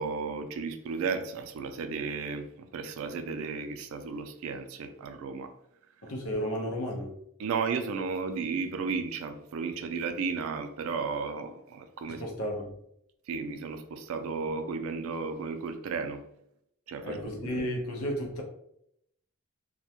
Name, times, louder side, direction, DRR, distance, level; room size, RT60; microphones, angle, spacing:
voice 1, 0.0-5.5 7.4-12.2 13.3-16.2 16.9-17.5, right 5 dB, 75° right, 7 dB, 0.3 m, -34 dB
voice 2, 6.0-7.2 12.1-12.8 17.0-18.4, equal, 90° left, 1 dB, 0.6 m, -33 dB
2.2 x 2.1 x 2.7 m, 0.74 s
head